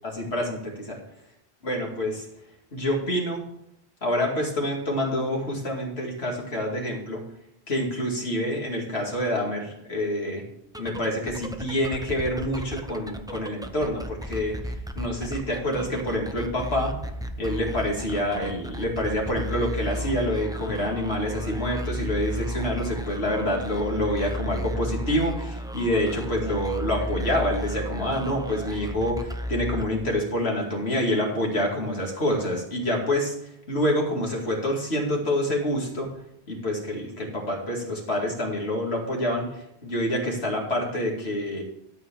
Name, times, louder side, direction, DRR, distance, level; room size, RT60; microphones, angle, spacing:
voice 1, 0.0-1.0 1.6-2.3 2.7-3.4 4.0-7.2 7.7-10.4 10.8-16.9 17.4-36.1 36.5-41.6, left 1 dB, 65° left, 0 dB, 2.6 m, -27 dB
sound 1, 10.6-30.4, equal, 5° right, 0.5 m, -34 dB
12.5 x 4.7 x 7.4 m, 0.76 s
omnidirectional pair, 1.2 m